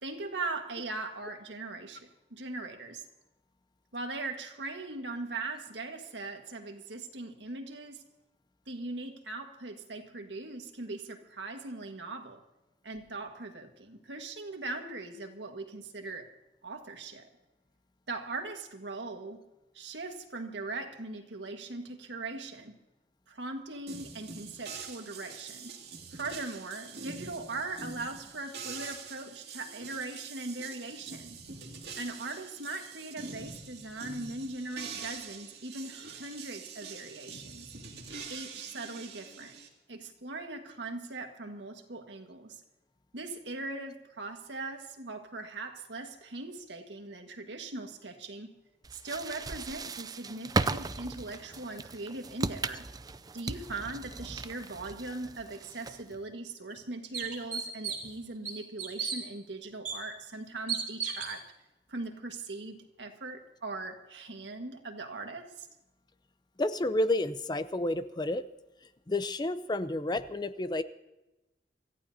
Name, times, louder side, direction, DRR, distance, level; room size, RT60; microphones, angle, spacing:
voice 1, 0.0-3.0 3.9-8.0 8.7-12.4 12.8-16.3 16.6-17.3 18.1-19.4 19.7-22.8 23.3-25.7 26.1-31.4 32.0-37.7 38.3-39.6 39.9-42.6 43.1-48.6 48.9-52.9 53.3-61.5 61.9-65.7, right 3 dB, 85° right, 4 dB, 1.7 m, -40 dB
sound 1, 23.9-39.7, right 5 dB, 65° right, 2.5 m, -45 dB
sound 2, 48.8-56.1, right 3 dB, 20° right, 0.4 m, -36 dB
sound 3, 56.1-56.2 56.7-56.8 57.1-58.1 58.4-59.2 59.8-60.0 60.7-61.3, right 7 dB, 45° right, 3.7 m, -34 dB
voice 2, 66.6-68.5 69.1-70.8, left 1 dB, 25° left, 12 dB, 0.6 m, -30 dB
26.5 x 14.5 x 2.8 m, 0.99 s
head